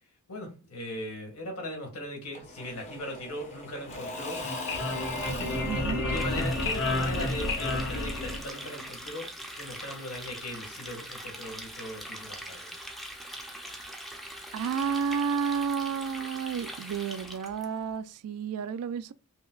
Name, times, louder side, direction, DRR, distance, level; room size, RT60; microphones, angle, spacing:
voice 1, 0.3-4.4 5.2-5.7 6.1-9.3 9.5-12.7, left 1 dB, 85° left, 1.7 m, -39 dB
Engine / Mechanisms / Drill, 2.3-9.0, left 1 dB, 30° left, 0.9 m, -41 dB
sound 1, 4.1-8.8, left 2 dB, 60° left, 1.1 m, -31 dB
voice 2, 5.6-6.0 14.5-19.1, right 6 dB, 80° right, 0.3 m, -31 dB
Water tap faucet, 6.1-17.6, equal, ahead, 0.5 m, -42 dB
5.4 x 2.1 x 2.3 m
head